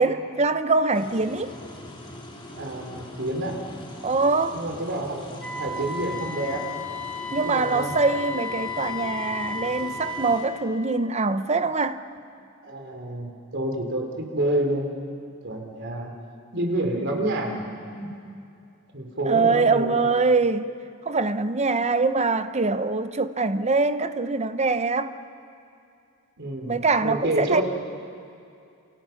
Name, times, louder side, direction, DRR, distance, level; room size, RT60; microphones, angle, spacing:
voice 1, 0.0-1.6 4.0-4.6 7.3-12.0 19.3-20.7 21.0-25.1 26.6-27.6, right 3 dB, 30° right, 0.9 m, -23 dB
sound 1, 0.9-10.5, left 1 dB, 25° left, 4.0 m, -42 dB
voice 2, 2.5-3.6 4.5-6.6 7.3-7.9 12.6-15.1 15.4-16.1 16.5-18.1 18.9-20.2 26.4-27.6, right 1 dB, 60° right, 3.7 m, -29 dB
Wind instrument woodwind instrument, 5.4-10.4, left 3 dB, 5° left, 4.5 m, -33 dB
30.0 x 29.0 x 5.9 m
head